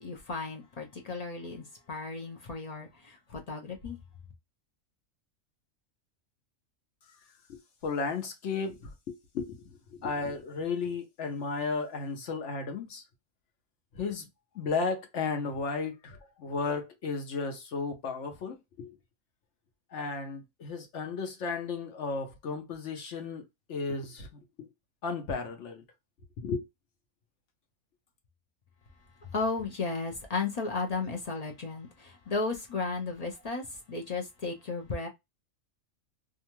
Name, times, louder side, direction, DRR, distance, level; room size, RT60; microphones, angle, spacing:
voice 1, 0.0-4.0 29.2-35.1, left 3 dB, 50° left, 0.5 m, -34 dB
voice 2, 7.5-13.0 13.9-14.2 14.5-18.9 19.9-24.3 24.6-24.7 25.0-25.8 26.4-26.7, left 4 dB, 65° left, 0.9 m, -34 dB
2.6 x 2.3 x 2.9 m
omnidirectional pair, 1.4 m